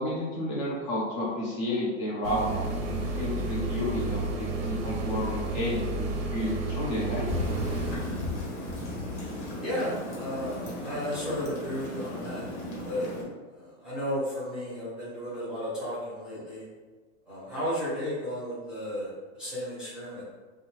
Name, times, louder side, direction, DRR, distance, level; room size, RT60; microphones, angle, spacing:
voice 1, 0.0-7.3, left 1 dB, 40° left, -5 dB, 0.7 m, -31 dB
sound 1, 2.2-8.0, right 2 dB, 55° right, 0.6 m, -31 dB
sound 2, 7.3-13.2, left 1 dB, 70° left, 1.2 m, -35 dB
voice 2, 9.6-12.5 12.8-13.1 13.5-16.6 17.3-20.2, equal, ahead, -12 dB, 0.7 m, -33 dB
2.6 x 2.3 x 3.1 m, 1.3 s
supercardioid pair, 155°, 37 cm